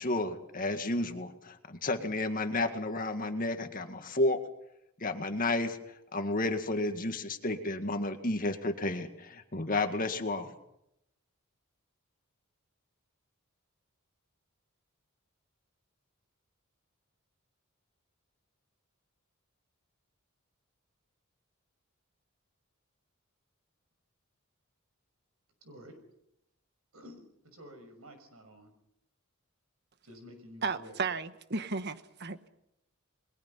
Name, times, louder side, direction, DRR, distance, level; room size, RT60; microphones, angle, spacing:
voice 1, 0.0-4.4 5.0-5.8 6.1-10.5, left 2 dB, 40° left, 2.0 m, -31 dB
voice 2, 25.6-26.0 26.9-28.7 30.0-31.0, equal, 85° right, 6.1 m, -51 dB
voice 3, 30.6-32.5, right 4 dB, 50° right, 1.3 m, -34 dB
29.5 x 21.5 x 5.6 m
head